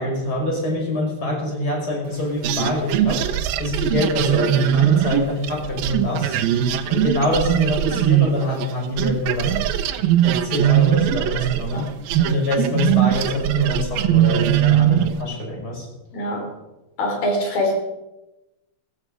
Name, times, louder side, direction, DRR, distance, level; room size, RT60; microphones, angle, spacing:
voice 1, 0.0-3.2 3.6-6.4 6.9-9.6 10.2-11.9 12.2-15.9, left 1 dB, 20° left, -1 dB, 5.5 m, -25 dB
sound 1, 2.4-8.7 9.0-15.2, right 12 dB, 80° right, 2.2 m, -20 dB
voice 2, 16.1-16.5 17.0-17.8, left 1 dB, 55° left, 2 dB, 5.1 m, -23 dB
16.5 x 15.5 x 5.0 m, 0.99 s
omnidirectional pair, 5.2 m